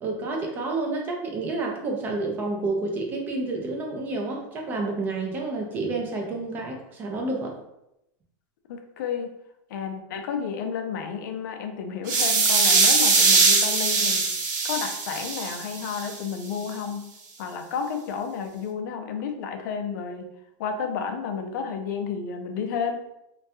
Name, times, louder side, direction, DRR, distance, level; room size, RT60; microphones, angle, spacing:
voice 1, 0.0-7.6, right 3 dB, 20° right, 1 dB, 0.3 m, -29 dB
voice 2, 8.7-9.3 9.7-14.3 14.6-17.1 17.4-20.3 20.6-23.0, left 6 dB, 65° left, 5 dB, 0.4 m, -31 dB
sound 1, 12.1-16.1, right 4 dB, 65° right, 0.6 m, -21 dB
2.3 x 2.2 x 2.7 m, 0.84 s
supercardioid pair, 165°, 11 cm